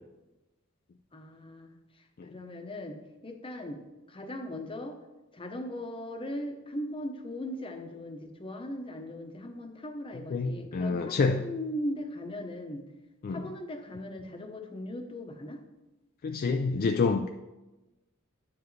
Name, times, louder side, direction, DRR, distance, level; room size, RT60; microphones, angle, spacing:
voice 1, 1.1-5.0 5.3-12.8 13.3-15.6, left 1 dB, 25° left, 5 dB, 0.8 m, -39 dB
voice 2, 10.3-11.4 13.2-13.4 16.2-17.3, left 4 dB, 45° left, 6 dB, 0.3 m, -27 dB
9.5 x 7.1 x 3.2 m, 1.1 s
head